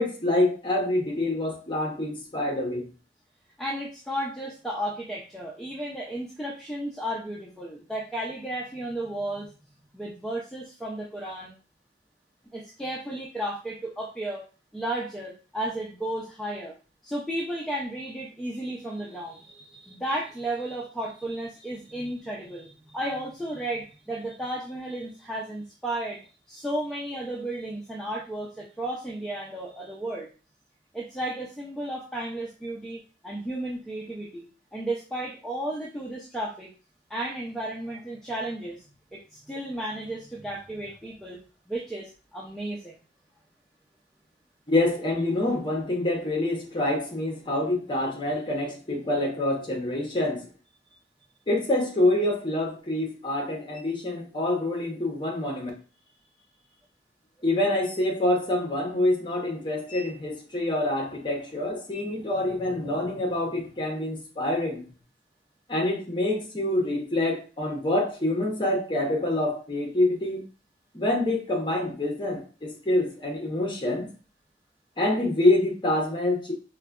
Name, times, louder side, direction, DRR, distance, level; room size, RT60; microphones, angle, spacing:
voice 1, 0.0-2.8 44.7-50.5 51.5-55.7 57.4-64.8 65.7-70.4 70.9-74.1 75.0-76.5, left 1 dB, 25° left, 0 dB, 0.7 m, -26 dB
voice 2, 3.6-9.5 9.9-11.5 12.5-14.4 14.7-16.7 17.0-30.3 30.9-34.5 34.7-36.7 37.1-38.8 39.1-41.4 41.7-42.9, right 1 dB, ahead, -4 dB, 0.4 m, -33 dB
3.8 x 2.1 x 2.2 m, 0.34 s
head